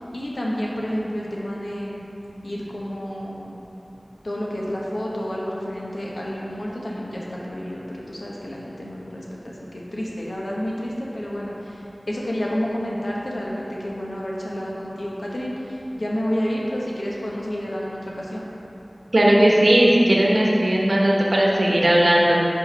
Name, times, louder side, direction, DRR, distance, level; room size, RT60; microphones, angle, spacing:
voice 1, 0.0-2.0 2.4-3.5 4.2-18.5, equal, 85° left, -4 dB, 1.0 m, -30 dB
voice 2, 19.1-22.4, right 1 dB, 90° right, -3 dB, 0.9 m, -17 dB
5.1 x 4.9 x 5.4 m, 3.0 s
wide cardioid pair, 40°, 0 cm